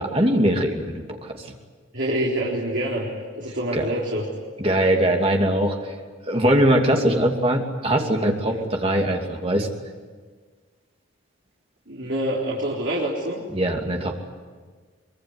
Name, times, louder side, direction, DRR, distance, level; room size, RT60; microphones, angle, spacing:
voice 1, 0.0-1.5 3.7-3.9 4.6-5.9 6.3-9.7 13.5-14.2, right 1 dB, 30° right, 2 dB, 2.6 m, -21 dB
voice 2, 1.9-3.1 3.3-4.2 8.4-8.6 11.9-13.4, right 1 dB, 60° right, -5 dB, 4.0 m, -26 dB
23.5 x 22.5 x 9.7 m, 1.5 s
head